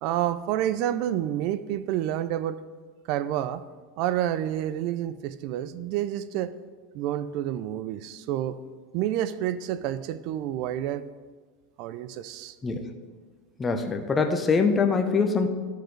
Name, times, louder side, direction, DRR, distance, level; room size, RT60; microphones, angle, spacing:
voice 1, 0.0-2.6 3.1-3.6 4.0-6.5 6.9-8.6 8.9-11.1 11.8-12.6, right 12 dB, 55° right, 14 dB, 0.4 m, -29 dB
voice 2, 13.6-15.5, left 4 dB, 15° left, 5 dB, 0.8 m, -23 dB
12.5 x 6.5 x 3.2 m, 1.4 s
supercardioid pair, 145°, 0 cm